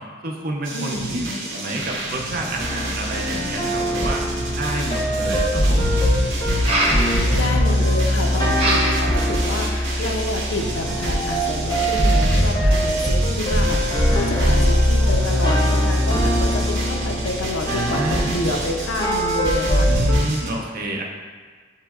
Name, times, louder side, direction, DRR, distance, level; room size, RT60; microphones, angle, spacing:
voice 1, 0.0-4.2 4.6-6.0 14.4-14.8 17.6-18.4 19.9-21.0, right 1 dB, 50° right, 0 dB, 0.6 m, -29 dB
sound 1, 0.6-20.5, right 2 dB, 90° right, 0.9 m, -31 dB
voice 2, 0.7-1.4 6.8-19.9, left 2 dB, 85° left, 3 dB, 0.5 m, -29 dB
sound 2, 2.6-20.2, equal, 20° left, 0.6 m, -21 dB
sound 3, 6.5-7.0 8.5-9.1 9.5-10.1, right 1 dB, 30° right, 0.9 m, -23 dB
7.2 x 3.0 x 2.3 m, 1.5 s
head